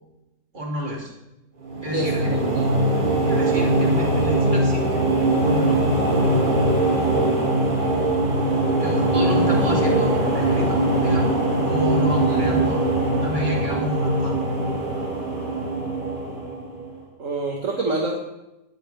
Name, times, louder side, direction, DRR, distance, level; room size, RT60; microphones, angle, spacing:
voice 1, 0.5-1.1 1.8-2.3 3.3-5.1 5.4-5.8 8.7-12.9 13.2-14.4, left 1 dB, 25° right, -3 dB, 3.2 m, -30 dB
sound 1, 1.6-16.9, right 1 dB, 75° right, 3.7 m, -21 dB
voice 2, 1.9-2.8 12.3-12.5 17.2-18.1, right 3 dB, 50° right, 0 dB, 1.9 m, -27 dB
19.0 x 13.5 x 3.4 m, 0.95 s
omnidirectional pair, 1.8 m